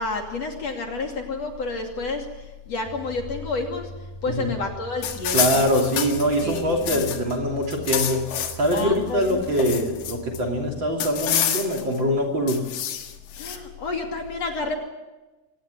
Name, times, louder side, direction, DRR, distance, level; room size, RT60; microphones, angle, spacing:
voice 1, 0.0-2.3 2.7-3.9 4.2-5.6 6.4-7.0 8.7-9.4 13.4-14.8, left 3 dB, 50° left, 3 dB, 3.6 m, -30 dB
sound 1, 2.8-10.9, right 4 dB, 70° right, 5.3 m, -42 dB
sound 2, 5.0-7.3 7.6-8.8 9.2-10.4 11.0-12.0 12.5-13.6, left 9 dB, 75° left, 3.3 m, -28 dB
voice 2, 5.3-8.2 8.5-12.6, equal, 35° right, 3 dB, 3.5 m, -23 dB
25.0 x 18.5 x 8.3 m, 1.1 s
omnidirectional pair, 4.1 m